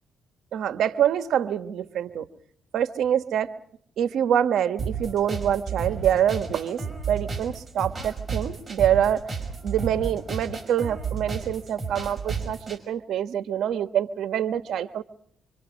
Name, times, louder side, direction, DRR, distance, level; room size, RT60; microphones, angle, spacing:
voice 1, 0.5-2.3 2.7-3.5 4.0-6.8 7.1-9.2 9.6-15.0, right 9 dB, 75° right, 10 dB, 1.4 m, -25 dB
sound 1, 4.8-12.8, right 5 dB, 25° right, 5.6 m, -33 dB
26.5 x 25.0 x 5.3 m, 0.62 s
cardioid pair, 90°, 0 cm